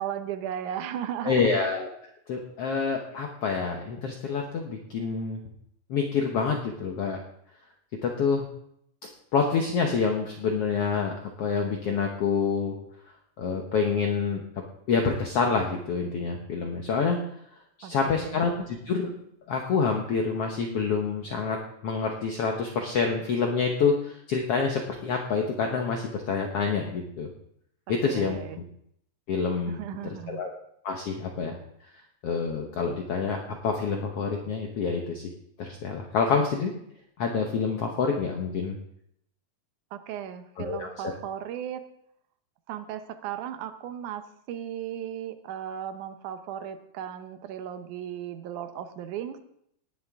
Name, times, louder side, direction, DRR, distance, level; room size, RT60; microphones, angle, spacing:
voice 1, 0.0-1.6 17.8-18.4 27.9-28.6 29.7-30.4 39.9-41.8 42.7-49.4, right 10 dB, 70° right, 8 dB, 2.1 m, -36 dB
voice 2, 1.2-1.9 2.3-5.4 5.9-7.2 8.0-8.5 9.3-11.1 11.4-12.7 13.4-14.4 14.9-17.2 17.8-19.1 19.5-21.6 21.8-27.3 27.9-28.6 29.3-29.8 30.3-30.5 30.8-31.6 32.2-35.2 35.6-36.7 37.2-38.8 40.6-40.9, left 5 dB, 75° left, 2 dB, 1.3 m, -27 dB
19.0 x 9.9 x 3.6 m, 0.72 s
omnidirectional pair, 4.3 m